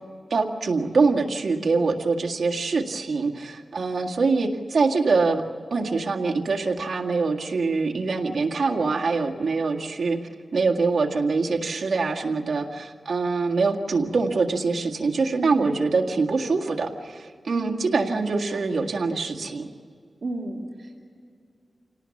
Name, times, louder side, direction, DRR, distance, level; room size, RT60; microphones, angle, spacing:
voice 1, 0.3-5.4 5.7-10.2 10.5-19.7, right 4 dB, 85° right, 1 dB, 1.9 m, -24 dB
voice 2, 15.4-15.7 17.5-18.0 18.4-18.9 20.2-21.0, right 2 dB, 60° right, -4 dB, 2.5 m, -34 dB
28.0 x 18.5 x 7.2 m, 2.3 s
wide cardioid pair, 120°, 0 cm